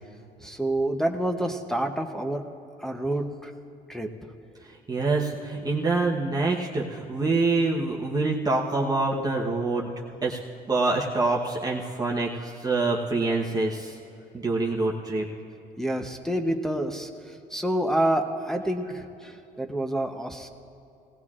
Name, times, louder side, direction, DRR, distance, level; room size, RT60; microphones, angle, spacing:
voice 1, 0.4-2.5 2.8-3.5 3.9-4.1 15.8-20.5, right 1 dB, 5° left, 2 dB, 0.8 m, -28 dB
voice 2, 4.7-9.9 10.2-10.4 10.7-14.0 14.3-15.3, right 3 dB, 20° right, -2 dB, 1.0 m, -26 dB
17.5 x 17.0 x 2.4 m, 2.8 s
cardioid pair, 110°, 17 cm